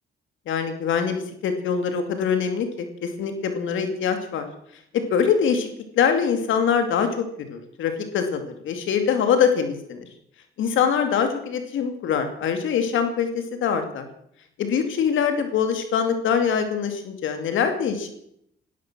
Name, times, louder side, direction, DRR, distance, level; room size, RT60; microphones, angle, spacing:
voice 1, 0.5-4.5 5.1-5.7 6.0-7.2 7.5-10.0 10.6-14.1 14.6-18.1, left 7 dB, 80° left, 7 dB, 2.6 m, -23 dB
16.5 x 13.0 x 6.2 m, 0.71 s
cardioid pair, 90°, 20 cm